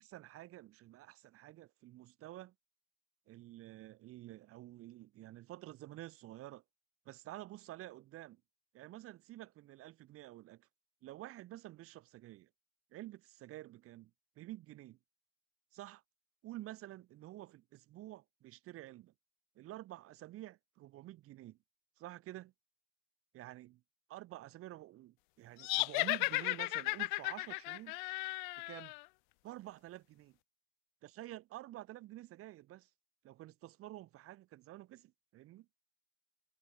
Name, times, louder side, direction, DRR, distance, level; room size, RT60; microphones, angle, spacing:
voice 1, 0.0-2.5 3.3-6.6 7.1-8.4 8.7-10.7 11.0-12.5 12.9-14.1 14.4-15.0 15.7-16.0 16.4-19.1 19.6-21.6 22.0-22.5 23.3-23.8 24.1-28.0 28.6-28.9 29.4-30.4 31.0-32.9 33.2-35.7, right 15 dB, 30° right, 3.9 m, -50 dB
sound 1, 25.6-29.0, left 26 dB, 35° left, 0.5 m, -35 dB
hypercardioid pair, 115°, 42 cm